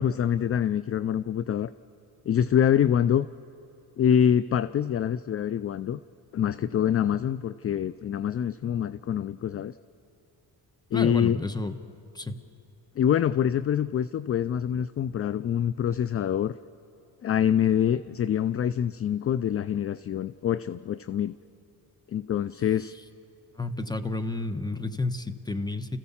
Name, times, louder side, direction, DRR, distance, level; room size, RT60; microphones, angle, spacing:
voice 1, 0.0-1.7 2.3-3.3 4.0-6.0 6.3-9.8 10.9-11.4 13.0-16.5 17.2-21.3 22.1-22.9, left 9 dB, 35° left, 16 dB, 0.4 m, -25 dB
voice 2, 10.9-11.8 12.1-12.4 23.5-26.0, left 2 dB, 10° left, 11 dB, 1.1 m, -31 dB
30.0 x 15.0 x 7.2 m, 2.7 s
cardioid pair, 80°, 40 cm